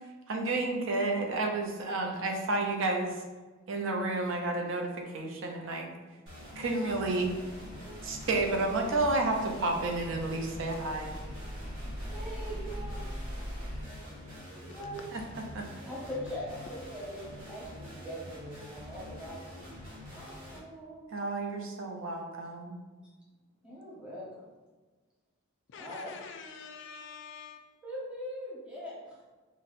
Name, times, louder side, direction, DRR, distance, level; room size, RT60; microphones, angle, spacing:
voice 1, 0.3-3.1 3.7-5.9 6.6-7.3 8.0-11.1 15.1-15.2 15.5-15.6 21.1-22.8, right 2 dB, 60° right, 2 dB, 0.5 m, -31 dB
sound 1, 6.3-20.6, left 1 dB, 85° right, 1.0 m, -46 dB
sound 2, 7.2-13.8, equal, 20° right, 1.5 m, -42 dB
voice 2, 12.1-13.0 14.6-15.0 15.8-19.6 20.1-21.1 23.6-24.4 25.8-26.2 27.8-28.9, equal, 5° right, -7 dB, 0.8 m, -42 dB
voice 3, 25.7-27.7, left 5 dB, 55° left, 5 dB, 0.3 m, -46 dB
4.0 x 2.1 x 2.5 m, 1.3 s
head